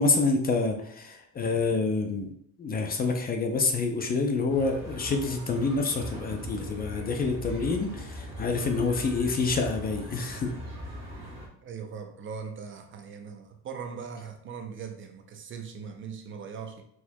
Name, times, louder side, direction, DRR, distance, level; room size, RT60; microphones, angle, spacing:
voice 1, 0.0-2.3 2.6-10.5, left 3 dB, 30° left, 4 dB, 0.6 m, -27 dB
sound 1, 4.5-11.5, equal, 20° right, 1.7 m, -40 dB
voice 2, 11.6-16.8, right 6 dB, 40° right, 5 dB, 0.6 m, -40 dB
4.6 x 4.3 x 2.2 m, 0.72 s
cardioid pair, 120°, 32 cm